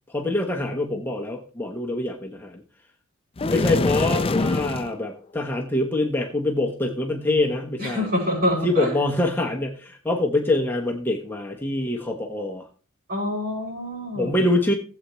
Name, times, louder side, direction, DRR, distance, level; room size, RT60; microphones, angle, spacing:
voice 1, 0.1-2.6 3.5-8.1 8.6-12.7 14.1-14.7, left 2 dB, 10° left, 0 dB, 1.0 m, -25 dB
sound 1, 3.4-4.9, left 2 dB, 25° left, 0.5 m, -23 dB
voice 2, 7.8-8.9 13.1-14.4, left 1 dB, 50° right, -2 dB, 5.6 m, -26 dB
16.5 x 8.0 x 3.1 m, 0.38 s
head